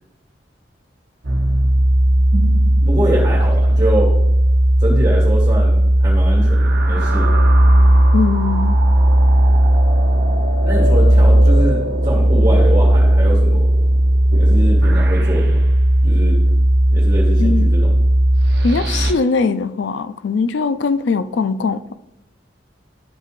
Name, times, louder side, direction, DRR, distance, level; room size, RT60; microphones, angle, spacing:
sound 1, 1.2-19.1, right 1 dB, 65° right, 0.9 m, -14 dB
voice 1, 2.9-4.1 4.8-7.3 10.6-13.6 14.3-15.6 16.0-16.4 16.9-18.1, right 1 dB, 20° right, -3 dB, 1.9 m, -24 dB
voice 2, 8.1-8.8 17.4-17.7 18.6-21.9, left 4 dB, 80° left, 12 dB, 0.4 m, -20 dB
12.0 x 5.4 x 2.5 m, 0.89 s
head